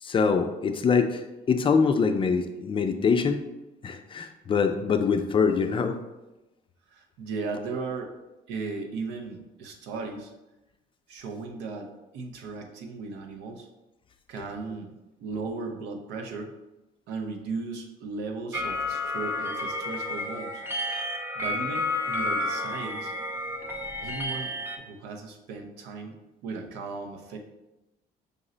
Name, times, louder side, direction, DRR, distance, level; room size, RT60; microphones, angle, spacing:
voice 1, 0.0-3.4 3.8-6.0, left 5 dB, 30° left, 7 dB, 0.4 m, -24 dB
voice 2, 6.9-8.1 8.5-10.3 11.1-13.7 14.3-14.9 15.2-16.5 17.1-20.6 21.3-23.1 24.0-27.4, right 4 dB, 90° right, 4 dB, 0.6 m, -36 dB
sound 1, 18.5-24.8, left 2 dB, 15° right, 0.6 m, -31 dB
5.2 x 2.0 x 3.8 m, 1.0 s
cardioid pair, 110°, 17 cm